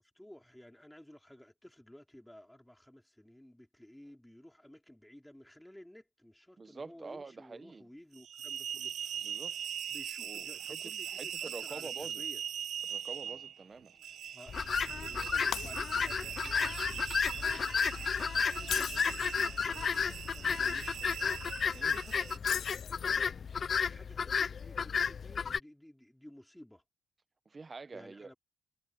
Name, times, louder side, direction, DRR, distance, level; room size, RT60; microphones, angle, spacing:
voice 1, 0.0-9.2 9.9-12.4 14.0-14.6 15.0-21.1 22.2-23.4 23.8-26.8 27.9-28.3, left 1 dB, 5° left, 3.4 m, -55 dB
voice 2, 6.6-7.9 9.2-9.5 10.2-10.8 11.1-12.2 12.9-13.9 21.7-22.0 27.4-28.3, right 4 dB, 30° right, 1.4 m, -47 dB
sound 1, 8.1-22.4, right 9 dB, 70° right, 1.5 m, -41 dB
sound 2, 14.5-25.6, left 6 dB, 45° left, 0.8 m, -32 dB
Shatter, 15.5-16.3 16.7-16.9 18.5-19.4 22.4-23.3, left 9 dB, 65° left, 0.3 m, -40 dB
cardioid pair, 90°, 0 cm